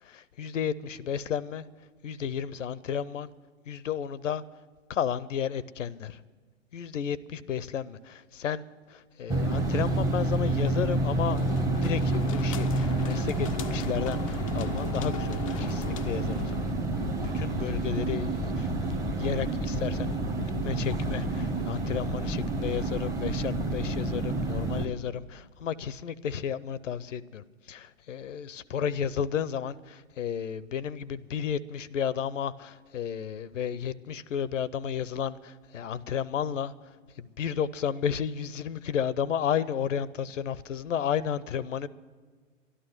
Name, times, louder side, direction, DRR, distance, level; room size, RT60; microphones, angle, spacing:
voice 1, 0.0-1.6 2.0-3.3 3.7-4.4 4.9-6.2 6.7-18.7 19.0-20.2 20.6-36.7 37.2-41.9, left 8 dB, 70° left, 20 dB, 0.7 m, -32 dB
sound 1, 9.3-24.9, right 2 dB, 10° right, 0.8 m, -29 dB
sound 2, 11.4-16.8, left 10 dB, 30° left, 0.4 m, -41 dB
12.5 x 11.5 x 7.8 m, 1.5 s
figure-of-eight pair, 120°, 39 cm